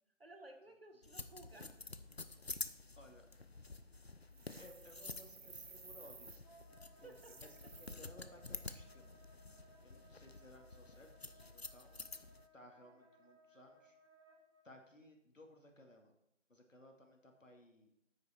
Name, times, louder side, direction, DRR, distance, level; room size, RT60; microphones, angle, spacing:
voice 1, 0.2-1.9 7.0-7.4, right 2 dB, 50° right, 6 dB, 1.4 m, -57 dB
sound 1, 1.0-12.5, left 3 dB, 55° left, 0.7 m, -50 dB
voice 2, 3.0-3.5 4.5-6.3 7.0-9.1 9.8-12.0 12.5-14.0 14.6-16.1 16.5-17.9, left 1 dB, 90° left, 3 dB, 2.5 m, -60 dB
sound 2, 4.3-6.4 7.1-7.9, right 4 dB, 75° right, 0.9 m, -56 dB
Wind instrument woodwind instrument, 6.4-14.6, right 1 dB, 25° right, 3.5 m, -66 dB
9.9 x 8.5 x 4.5 m, 0.77 s
figure-of-eight pair, 180°, 37 cm